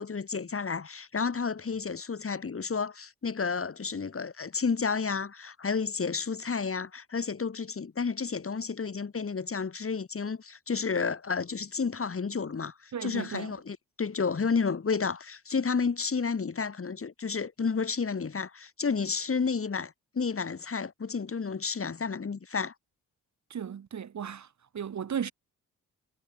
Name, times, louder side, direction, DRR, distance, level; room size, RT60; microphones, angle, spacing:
voice 1, 0.0-22.7, left 5 dB, 40° left, 3.1 m, -31 dB
voice 2, 12.9-13.5 23.5-24.5 24.7-25.3, right 8 dB, 55° right, 1.7 m, -35 dB
cardioid pair, 65°, 33 cm